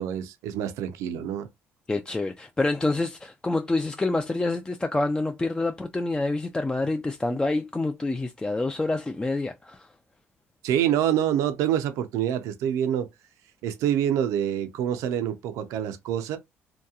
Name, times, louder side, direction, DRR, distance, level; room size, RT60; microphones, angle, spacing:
voice 1, 0.0-1.5 10.6-13.1 13.6-16.4, right 10 dB, 85° right, 0.5 m, -26 dB
voice 2, 1.9-9.9, left 2 dB, 15° left, 0.3 m, -27 dB
2.8 x 2.2 x 2.3 m
cardioid pair, 80°, 5 cm